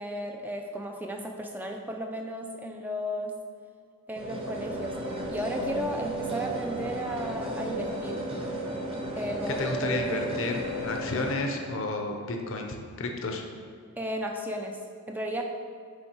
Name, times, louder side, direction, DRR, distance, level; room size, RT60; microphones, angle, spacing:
voice 1, 0.0-3.4 4.1-8.2 9.2-9.6 14.0-15.4, equal, 10° right, 2 dB, 0.4 m, -34 dB
sound 1, 4.1-11.4, right 1 dB, 25° right, 0.8 m, -33 dB
voice 2, 9.6-13.4, left 2 dB, 60° left, 3 dB, 0.7 m, -31 dB
8.6 x 3.7 x 4.4 m, 2.2 s
head